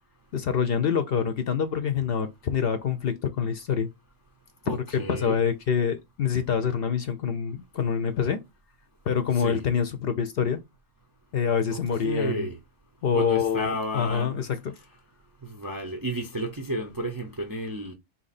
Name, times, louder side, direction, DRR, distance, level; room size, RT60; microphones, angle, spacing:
voice 1, 0.3-3.9 4.7-8.4 9.1-10.6 11.3-12.5 13.0-14.7, left 7 dB, 60° left, 0.7 m, -26 dB
voice 2, 4.7-5.4 9.3-9.6 11.7-12.6 13.1-14.4 15.4-17.9, right 1 dB, 30° right, 0.4 m, -32 dB
4.0 x 2.9 x 4.1 m
omnidirectional pair, 1.3 m